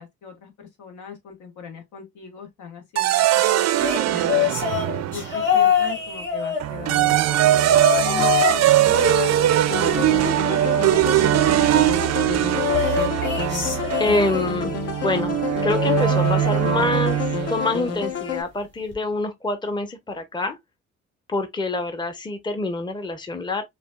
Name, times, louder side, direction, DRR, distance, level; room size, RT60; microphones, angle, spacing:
voice 1, 0.0-4.4 5.1-7.5 8.0-12.0, left 6 dB, 75° left, 1.3 m, -38 dB
sound 1, 3.0-5.5 6.6-17.7, right 13 dB, 60° right, 0.5 m, -21 dB
sound 2, 3.8-7.1 7.6-8.6 8.9-10.5 12.5-14.7 15.6-17.1 17.4-17.8 18.9-19.0, left 9 dB, 35° left, 2.0 m, -26 dB
sound 3, 9.7-18.4, left 8 dB, 55° left, 0.9 m, -30 dB
voice 2, 14.0-20.6 21.3-23.6, left 2 dB, 15° left, 0.7 m, -26 dB
5.0 x 2.4 x 2.2 m
cardioid pair, 90°, 30 cm